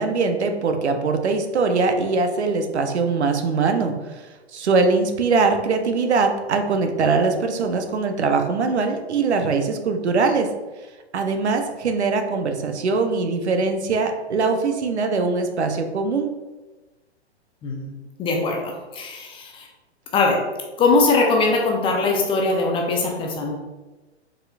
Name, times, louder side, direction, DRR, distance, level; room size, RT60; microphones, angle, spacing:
voice 1, 0.0-10.5 11.1-16.3, right 4 dB, 75° right, 6 dB, 0.8 m, -22 dB
voice 2, 18.2-19.7 20.1-20.4 20.8-23.5, left 3 dB, 15° left, 0 dB, 0.6 m, -21 dB
5.2 x 4.2 x 2.3 m, 1.2 s
hypercardioid pair, 120°, 34 cm